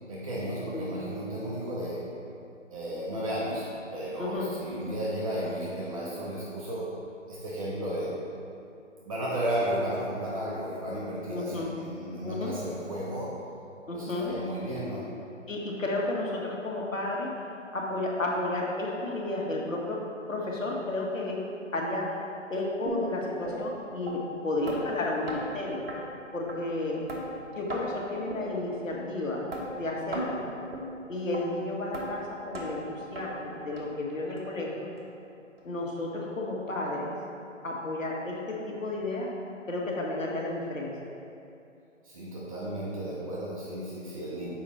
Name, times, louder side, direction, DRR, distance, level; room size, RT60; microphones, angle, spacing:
voice 1, 0.1-2.0 2.7-3.7 3.9-6.9 7.3-8.2 9.0-13.3 13.9-15.1 42.0-44.5, right 1 dB, 25° right, -7 dB, 1.0 m, -33 dB
voice 2, 4.2-4.5 11.3-11.7 12.2-12.5 13.9-14.3 15.5-17.3 17.7-20.0 20.3-21.4 21.7-22.2 22.5-25.8 26.3-27.0 27.5-29.4 29.8-30.5 31.1-34.9 35.6-37.1 37.6-39.3 39.7-40.9, left 2 dB, 85° left, -2 dB, 1.6 m, -32 dB
sound 1, 22.9-23.0 23.5-23.6 24.1-24.2 24.7-24.8 25.3-25.4 25.9-26.0 26.5-26.6 27.1-27.2 27.7-27.8 28.3-28.4 28.9-29.0 29.5-29.6 30.1-30.3 30.7-30.9 31.3-31.4 31.9-32.1 32.5-32.7 33.2-33.3 33.8-33.9 34.4-34.5 35.0-35.1 35.6-35.7, right 1 dB, 50° right, 1.3 m, -36 dB
7.0 x 4.9 x 4.2 m, 2.7 s
figure-of-eight pair, 145°, 38 cm